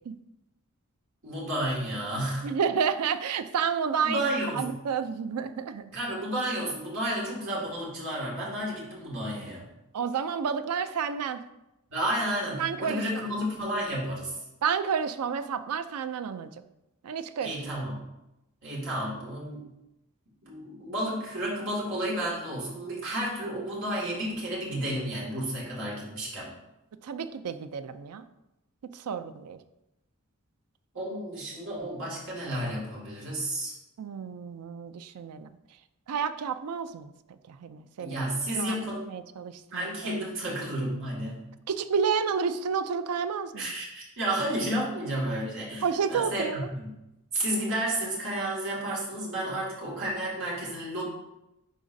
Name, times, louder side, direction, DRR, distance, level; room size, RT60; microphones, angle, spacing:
voice 1, 1.2-2.5 4.0-4.7 5.9-9.7 11.9-14.4 17.4-18.1 18.6-19.7 20.4-26.5 30.9-33.8 38.0-39.1 39.7-41.5 43.6-46.9 47.3-51.1, right 1 dB, 60° right, -5 dB, 2.2 m, -31 dB
voice 2, 2.4-4.3 4.6-5.8 9.9-11.4 12.5-13.0 14.6-16.5 17.0-17.5 27.0-28.2 28.8-29.6 34.0-35.5 36.1-37.1 37.5-38.2 38.5-38.8 39.1-40.2 41.7-43.7 45.8-46.7, right 6 dB, 85° right, 12 dB, 0.4 m, -30 dB
10.0 x 3.9 x 2.7 m, 0.91 s
head